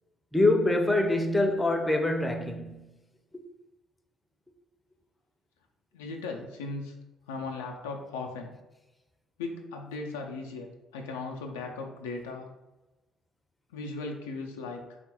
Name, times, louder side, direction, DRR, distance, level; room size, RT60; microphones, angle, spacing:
voice 1, 0.3-2.9 3.3-3.4, left 2 dB, 15° left, 0.6 m, -25 dB
voice 2, 5.9-6.9 7.3-8.5 9.4-10.7 10.9-12.5 13.7-15.0, left 3 dB, 80° left, 0.4 m, -37 dB
3.6 x 2.4 x 4.2 m
hypercardioid pair, 50°, 0 cm